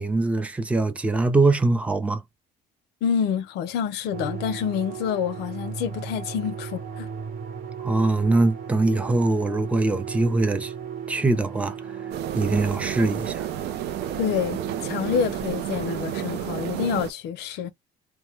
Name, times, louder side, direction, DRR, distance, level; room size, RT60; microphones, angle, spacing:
voice 1, 0.0-2.2 7.8-10.7 11.1-12.0 12.3-13.5, right 2 dB, 10° right, 0.5 m, -22 dB
voice 2, 3.0-7.1 14.2-17.7, left 8 dB, 80° left, 0.5 m, -27 dB
sound 1, 4.1-17.0, right 8 dB, 55° right, 0.9 m, -36 dB
sound 2, 12.1-17.1, right 11 dB, 75° right, 0.5 m, -32 dB
2.1 x 2.1 x 3.1 m
cardioid pair, 110°, 17 cm